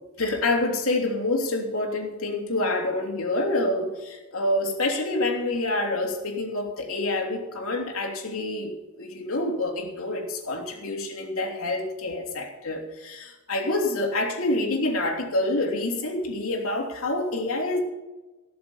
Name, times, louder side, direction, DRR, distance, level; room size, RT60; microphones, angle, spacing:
voice 1, 0.2-17.8, left 2 dB, 65° left, 1 dB, 3.1 m, -27 dB
17.5 x 7.1 x 7.2 m, 1.1 s
head